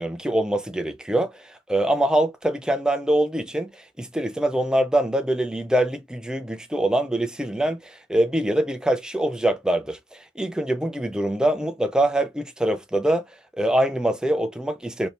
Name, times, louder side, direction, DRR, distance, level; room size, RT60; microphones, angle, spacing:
voice 1, 0.0-13.2 13.6-15.1, right 1 dB, 5° right, 0.3 m, -24 dB
2.8 x 2.7 x 3.1 m
head